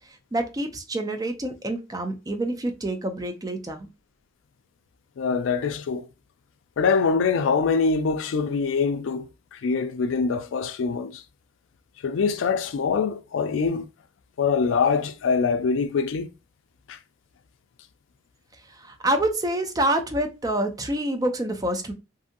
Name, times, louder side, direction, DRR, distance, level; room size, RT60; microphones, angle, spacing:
voice 1, 0.3-3.9 18.7-21.9, right 1 dB, 20° right, 0.4 m, -27 dB
voice 2, 5.2-6.1 6.8-11.2 12.0-13.9 14.4-16.3 16.9-17.0, left 5 dB, 75° left, 0.3 m, -24 dB
2.6 x 2.6 x 2.5 m
head